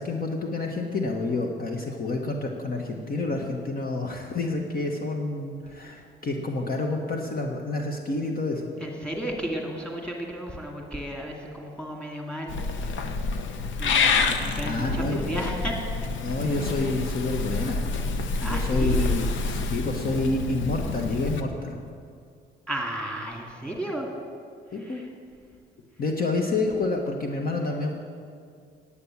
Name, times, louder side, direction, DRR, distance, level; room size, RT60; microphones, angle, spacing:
voice 1, 0.0-8.7 13.6-13.7 14.6-15.2 16.2-17.8 18.4-21.8 24.7-25.0 26.0-28.0, left 2 dB, 45° left, 2 dB, 1.1 m, -29 dB
voice 2, 8.8-12.6 13.8-16.1 18.4-19.1 22.7-24.1 24.7-25.1, right 1 dB, 5° left, 0 dB, 2.2 m, -33 dB
Purr / Meow, 12.5-21.4, left 4 dB, 75° left, 0.8 m, -27 dB
9.7 x 8.4 x 7.1 m, 2.2 s
cardioid pair, 90°, 20 cm